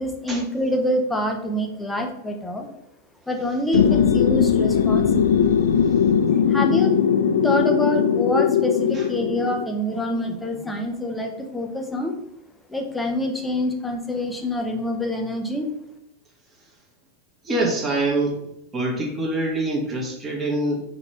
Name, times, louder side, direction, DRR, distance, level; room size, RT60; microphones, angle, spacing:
voice 1, 0.0-2.7 3.3-5.5 6.3-6.9 7.4-12.1 12.7-15.7, left 1 dB, 5° left, 2 dB, 1.0 m, -26 dB
sound 1, 3.7-9.7, left 7 dB, 65° left, 0.4 m, -19 dB
voice 2, 17.4-18.4 18.7-20.8, right 2 dB, 20° right, -2 dB, 1.8 m, -24 dB
4.2 x 4.1 x 5.5 m, 0.80 s
figure-of-eight pair, 90°, 0 cm